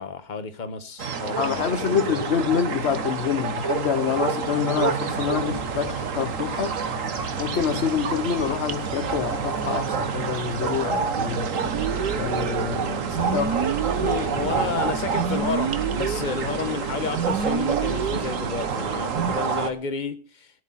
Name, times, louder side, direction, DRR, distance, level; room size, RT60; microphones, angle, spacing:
voice 1, 0.0-2.2 14.0-20.5, left 5 dB, 30° left, 1.3 m, -31 dB
sound 1, 1.0-19.7, right 6 dB, 55° right, 1.6 m, -28 dB
voice 2, 1.4-6.7 7.4-11.5 12.2-13.7, left 7 dB, 50° left, 1.1 m, -26 dB
sound 2, 5.1-15.3, right 2 dB, 35° right, 2.8 m, -38 dB
sound 3, 11.7-19.3, right 7 dB, 80° right, 1.7 m, -29 dB
18.0 x 11.0 x 4.2 m
omnidirectional pair, 1.7 m